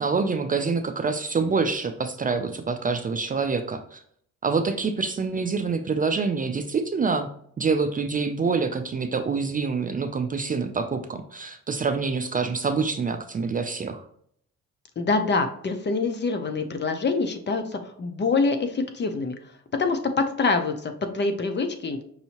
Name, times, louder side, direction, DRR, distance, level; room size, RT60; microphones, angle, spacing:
voice 1, 0.0-4.0 4.4-7.3 7.6-14.0, right 4 dB, 30° right, 6 dB, 0.4 m, -26 dB
voice 2, 15.0-19.4 19.8-22.0, left 4 dB, 35° left, 7 dB, 0.7 m, -25 dB
5.5 x 2.7 x 2.9 m, 0.65 s
cardioid pair, 90°, 30 cm